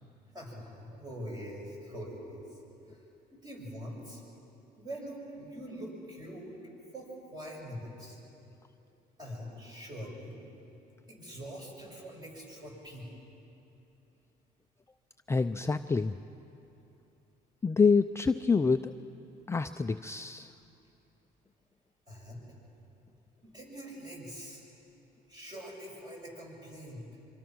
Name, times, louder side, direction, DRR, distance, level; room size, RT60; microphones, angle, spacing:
voice 1, 0.3-2.6 2.9-4.2 4.8-6.6 6.9-8.2 9.2-10.4 11.1-13.1 22.1-22.5 23.4-24.6 25.3-27.1, equal, 25° right, -2 dB, 7.1 m, -44 dB
voice 2, 15.3-16.2 17.6-18.9 19.5-20.5, left 4 dB, 15° left, 8 dB, 0.4 m, -27 dB
25.5 x 25.0 x 6.2 m, 2.9 s
cardioid pair, 110°, 17 cm